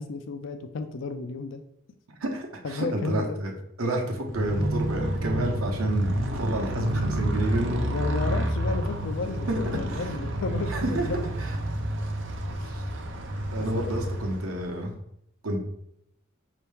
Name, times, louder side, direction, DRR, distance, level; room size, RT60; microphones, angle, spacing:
voice 1, 0.0-1.6 2.6-3.4 7.9-11.3 13.7-13.8, left 3 dB, 60° left, 7 dB, 0.4 m, -32 dB
voice 2, 2.2-3.5 3.8-7.8 9.5-9.6 9.9-10.1 10.7-11.1 11.4-11.5 12.6-12.9 13.5-14.9 15.4-15.6, right 1 dB, 85° right, 2 dB, 0.9 m, -30 dB
Motorcycle, 4.2-14.9, right 1 dB, 60° right, 0.6 m, -29 dB
5.4 x 2.9 x 3.4 m, 0.76 s
head